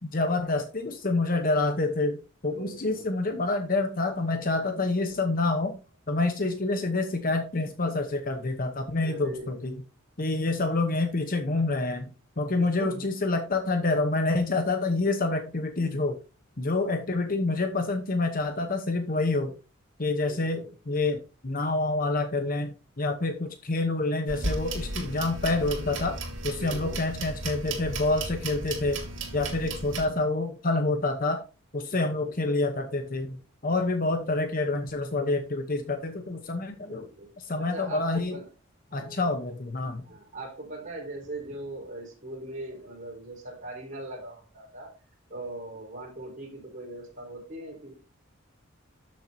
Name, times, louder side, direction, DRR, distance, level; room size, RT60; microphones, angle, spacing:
voice 1, 0.0-5.8 6.1-9.8 10.2-12.1 12.4-16.2 16.6-19.5 20.0-29.0 29.3-31.4 31.7-37.1 37.4-38.4 38.9-40.0, left 2 dB, 45° left, 7 dB, 1.0 m, -27 dB
voice 2, 2.5-3.1 9.0-9.6 12.6-13.1 20.2-20.7 26.6-27.1 31.9-32.4 36.8-37.3 37.6-38.4 38.9-39.3 40.0-44.9 45.3-47.9, right 2 dB, 40° right, -2 dB, 4.2 m, -40 dB
sound 1, 24.3-30.1, right 2 dB, 65° right, 3.1 m, -35 dB
13.0 x 7.6 x 2.8 m, 0.32 s
head